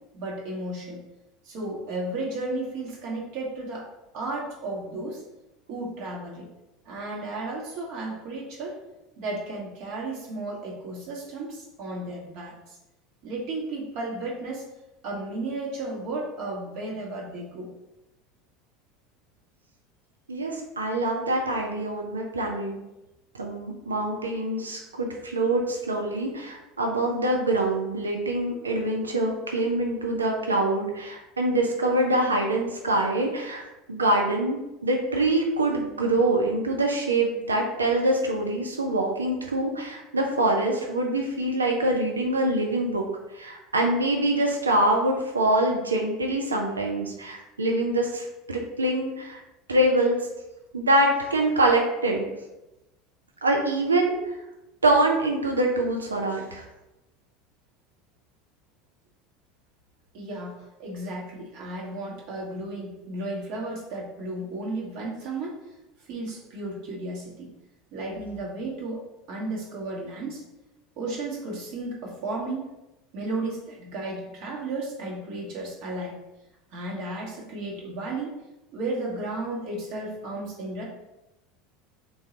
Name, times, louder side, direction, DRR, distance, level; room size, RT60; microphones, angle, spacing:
voice 1, 0.1-1.0 1.4-3.9 4.1-5.2 5.7-6.5 6.8-8.8 9.2-12.5 13.2-14.7 15.0-17.7 60.1-65.6 66.1-67.5 67.9-70.4 71.0-72.6 73.1-76.2 76.7-78.4 78.7-80.8, right 2 dB, 60° right, -3 dB, 1.4 m, -34 dB
voice 2, 20.3-22.8 23.3-43.1 43.3-49.4 49.7-50.2 50.7-52.3 53.4-54.3 54.8-56.6, right 1 dB, 90° right, 1 dB, 0.5 m, -25 dB
3.8 x 2.7 x 4.2 m, 0.95 s
hypercardioid pair, 75°, 0 cm